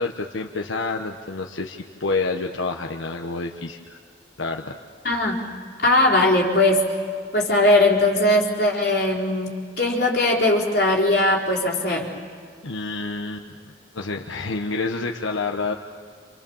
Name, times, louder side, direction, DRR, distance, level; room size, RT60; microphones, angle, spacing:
voice 1, 0.0-4.0 4.4-4.7 12.6-15.7, left 3 dB, 85° left, 1 dB, 1.2 m, -28 dB
voice 2, 5.0-5.4 5.8-6.8 7.3-12.1, left 1 dB, 55° left, -3 dB, 4.4 m, -19 dB
30.0 x 27.5 x 7.2 m, 2.1 s
head